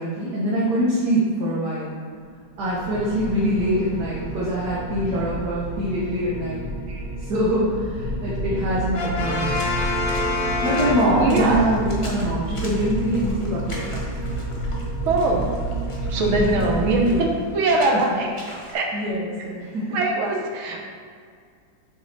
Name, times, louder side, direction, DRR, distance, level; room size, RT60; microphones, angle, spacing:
voice 1, 0.0-1.9 2.6-6.6 7.3-9.6 10.6-13.9 16.2-17.2 18.9-20.0, equal, 60° right, -7 dB, 1.6 m, -24 dB
sound 1, 2.5-17.1, right 1 dB, 75° left, 1.7 m, -30 dB
Brass instrument, 8.9-11.6, left 3 dB, 60° left, 1.1 m, -26 dB
Water / Splash splatter, 9.4-18.7, left 1 dB, 25° left, 0.6 m, -42 dB
voice 2, 11.1-11.6 15.1-15.5 16.1-18.3 18.7-18.9 19.9-20.8, right 2 dB, 90° right, 1 dB, 1.8 m, -22 dB
6.6 x 4.7 x 4.1 m, 2.1 s
omnidirectional pair, 2.1 m